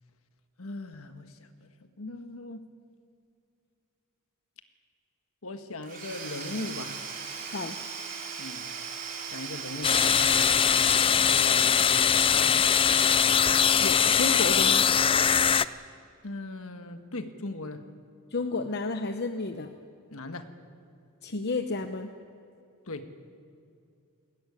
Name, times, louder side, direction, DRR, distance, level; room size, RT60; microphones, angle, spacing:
voice 1, 0.6-1.7 2.0-2.6 5.4-7.1 8.4-8.7 9.2-10.6 11.1-12.6 16.2-17.8 20.1-20.5 22.9-23.1, left 2 dB, 65° left, 8 dB, 1.6 m, -39 dB
Domestic sounds home sounds / Tools, 5.8-11.9, right 6 dB, 40° right, 3.9 m, -38 dB
sound 1, 9.8-15.7, left 7 dB, 25° left, 0.4 m, -22 dB
voice 2, 13.8-14.9 18.3-19.8 21.2-22.1, left 3 dB, 50° left, 7 dB, 0.9 m, -31 dB
21.0 x 16.5 x 9.8 m, 2.6 s
head